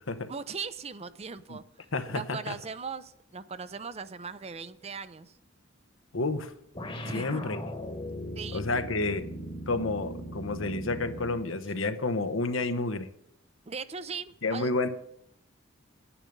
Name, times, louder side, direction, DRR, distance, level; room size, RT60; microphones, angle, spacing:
voice 1, 0.3-1.6 2.0-5.3 7.0-7.4 8.3-8.6 13.7-14.7, right 5 dB, 30° right, 14 dB, 0.6 m, -39 dB
voice 2, 1.9-2.5 6.1-6.5 7.1-7.6 8.5-9.3 9.7-13.1 14.4-14.9, left 3 dB, 85° left, 9 dB, 1.1 m, -30 dB
sound 1, 6.7-11.5, equal, 25° left, 1.3 m, -39 dB
10.5 x 10.0 x 5.3 m, 0.74 s
head